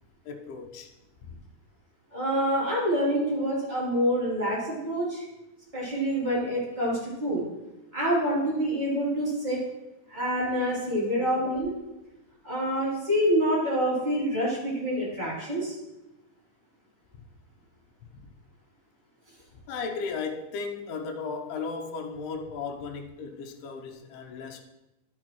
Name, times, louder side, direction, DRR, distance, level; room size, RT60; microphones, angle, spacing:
voice 1, 0.3-0.9 1.2-1.4 18.1-18.3 19.7-24.6, left 5 dB, 85° left, 2 dB, 2.8 m, -35 dB
voice 2, 2.1-5.2 5.7-7.4 7.9-9.6 10.1-11.7 12.4-15.7, equal, 15° right, -8 dB, 2.4 m, -27 dB
11.5 x 6.4 x 3.0 m, 0.97 s
omnidirectional pair, 4.5 m